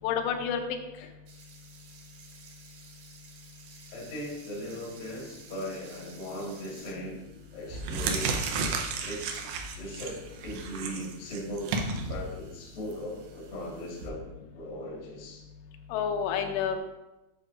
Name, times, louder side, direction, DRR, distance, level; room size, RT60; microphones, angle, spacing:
voice 1, 0.0-0.6 15.9-16.8, left 8 dB, 85° left, 5 dB, 2.9 m, -28 dB
sound 1, 1.3-6.9, right 5 dB, 70° right, 2.4 m, -52 dB
voice 2, 3.9-7.2 7.5-8.4 9.0-11.8 12.1-14.3 14.5-15.4, equal, 65° left, -3 dB, 1.0 m, -38 dB
sound 2, 6.8-7.1 7.6-14.1, right 4 dB, 85° right, 2.8 m, -34 dB
10.0 x 5.9 x 2.5 m, 1.0 s
omnidirectional pair, 4.9 m